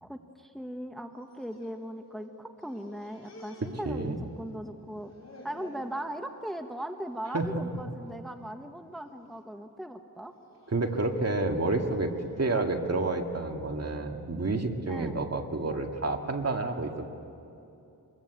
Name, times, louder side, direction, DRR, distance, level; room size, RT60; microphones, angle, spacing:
voice 1, 0.0-5.1 5.4-10.3 14.9-15.2, right 1 dB, ahead, 5 dB, 1.1 m, -39 dB
sound 1, 1.2-2.3 2.6-4.5 4.8-5.9 6.4-6.7 7.1-7.3 8.1-8.5 9.0-9.4 10.2-12.4, left 2 dB, 45° left, 4.1 m, -53 dB
voice 2, 3.8-4.2 7.3-7.6 10.7-12.1 12.4-17.1, right 2 dB, 40° right, 4 dB, 2.0 m, -29 dB
25.5 x 21.0 x 8.2 m, 2.8 s
wide cardioid pair, 90°, 37 cm